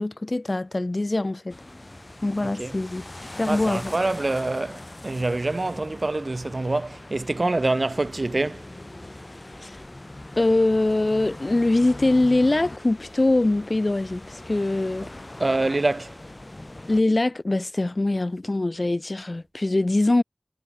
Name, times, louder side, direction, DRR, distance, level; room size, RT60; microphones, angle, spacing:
voice 1, 0.0-1.6 2.2-3.0 3.4-3.9 9.6-9.7 10.4-15.1 16.9-20.2, left 2 dB, 70° left, 1.7 m, -23 dB
sound 1, 1.5-17.0, left 1 dB, 50° left, 4.5 m, -41 dB
voice 2, 2.4-2.8 3.5-8.7 15.4-16.2, right 2 dB, 85° right, 2.2 m, -26 dB
wide cardioid pair, 45°, 0 cm